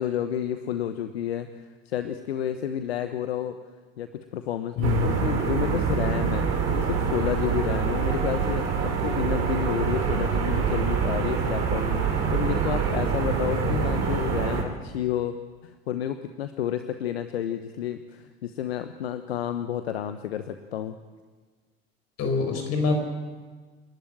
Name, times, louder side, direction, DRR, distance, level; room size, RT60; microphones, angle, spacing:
voice 1, 0.0-3.6 4.0-15.4 15.6-21.0, left 10 dB, 85° left, 9 dB, 1.0 m, -30 dB
voice 2, 4.8-5.1 13.6-13.7 22.2-23.0, left 4 dB, 55° left, 4 dB, 6.1 m, -25 dB
sound 1, 4.8-14.6, right 6 dB, 55° right, 4.6 m, -25 dB
29.0 x 12.0 x 8.9 m, 1.4 s
hypercardioid pair, 65°, 31 cm